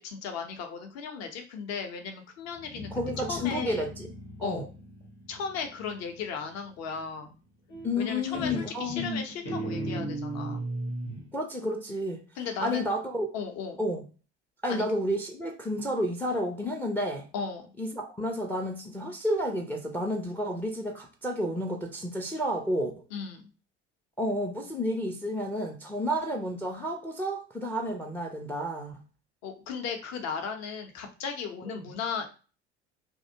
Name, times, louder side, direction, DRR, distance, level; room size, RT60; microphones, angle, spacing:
voice 1, 0.0-2.9 3.2-3.9 4.4-4.7 5.3-7.4 8.0-10.6 12.4-12.9 13.3-13.8 14.7-14.9 17.3-17.7 23.1-23.4 29.4-32.3, left 6 dB, 50° left, 0.7 m, -36 dB
Guitar, 2.6-6.2 7.7-8.1 8.3-11.3, right 1 dB, 75° left, 0.9 m, -37 dB
voice 2, 2.9-4.1 4.4-4.6 7.8-9.3 11.3-12.2 12.6-13.3 13.8-14.0 14.6-17.3 17.8-22.9 24.2-29.0 31.7-31.8, equal, 5° left, 0.4 m, -31 dB
2.6 x 2.0 x 2.7 m
figure-of-eight pair, 65°, 34 cm